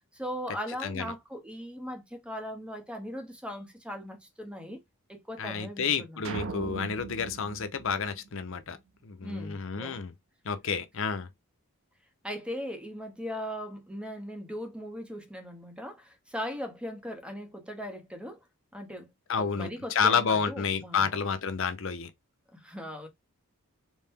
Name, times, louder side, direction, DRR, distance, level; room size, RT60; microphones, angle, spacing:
voice 1, 0.1-4.8 5.1-6.3 9.2-10.0 12.2-18.4 18.7-19.1 19.4-21.2 22.5-23.1, equal, 5° right, 0.7 m, -39 dB
voice 2, 0.8-1.1 5.4-8.8 9.0-10.1 10.4-11.3 19.3-22.1, left 6 dB, 60° left, 0.6 m, -30 dB
sound 1, 6.2-8.7, right 4 dB, 65° right, 0.8 m, -39 dB
4.2 x 2.1 x 3.5 m
head